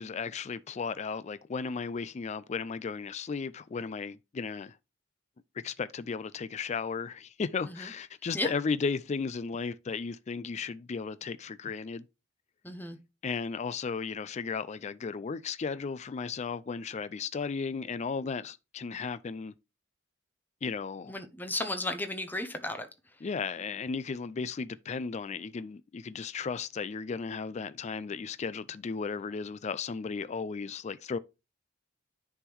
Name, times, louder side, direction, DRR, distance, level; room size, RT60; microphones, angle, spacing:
voice 1, 0.0-4.8 5.6-12.0 13.2-19.5 20.6-21.1 23.2-31.2, left 5 dB, 35° left, 0.4 m, -35 dB
voice 2, 12.6-13.0 21.1-22.9, left 1 dB, 10° left, 1.0 m, -34 dB
10.0 x 3.6 x 4.5 m
head